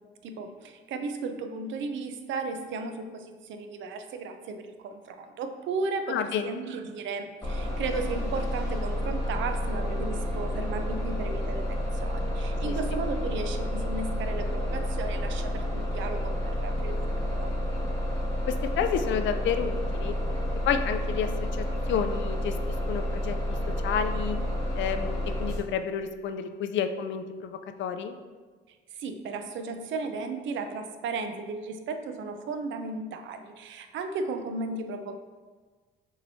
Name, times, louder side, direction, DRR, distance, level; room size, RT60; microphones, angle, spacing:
voice 1, 0.2-17.5 28.9-35.2, right 3 dB, 75° right, 7 dB, 0.5 m, -35 dB
voice 2, 6.1-6.6 12.6-12.8 18.5-20.1 20.6-22.5 22.9-23.4 23.8-24.4 24.7-28.2, left 7 dB, 70° left, 8 dB, 0.4 m, -30 dB
Bus, 7.4-25.6, equal, 15° left, 1.2 m, -30 dB
6.2 x 3.0 x 2.7 m, 1.4 s
cardioid pair, 90°, 20 cm